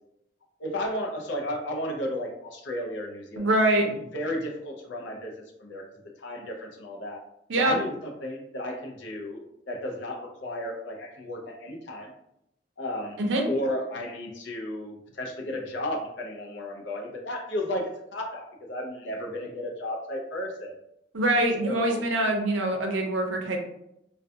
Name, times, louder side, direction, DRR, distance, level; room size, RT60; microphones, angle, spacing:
voice 1, 0.6-3.5 3.8-5.3 5.6-5.8 6.2-7.2 7.5-9.4 9.7-12.1 12.8-13.2 13.5-20.7 21.6-22.0, left 1 dB, 75° left, 0 dB, 0.5 m, -33 dB
voice 2, 3.4-3.8 7.5-7.8 13.2-13.4 21.1-23.6, right 1 dB, 80° right, 2 dB, 0.5 m, -24 dB
2.4 x 2.2 x 2.6 m, 0.80 s
head